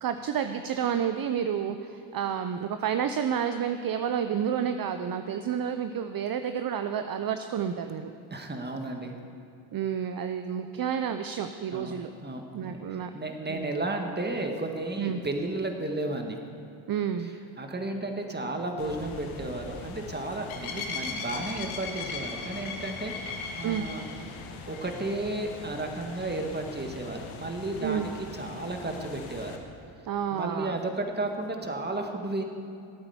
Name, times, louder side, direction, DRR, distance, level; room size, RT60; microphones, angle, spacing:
voice 1, 0.0-8.1 9.7-12.1 12.5-13.1 13.5-13.7 15.0-15.2 16.9-17.3 23.6-23.8 27.8-28.1 30.0-30.8, right 8 dB, 45° right, 8 dB, 0.7 m, -30 dB
voice 2, 8.3-9.1 11.7-12.0 12.2-16.4 17.2-17.3 17.6-24.0 24.7-29.6 30.3-32.4, right 2 dB, 20° right, 4 dB, 1.8 m, -33 dB
sound 1, 18.8-29.6, left 4 dB, 85° left, 1.5 m, -39 dB
13.5 x 8.7 x 7.1 m, 2.6 s
supercardioid pair, 70°, 47 cm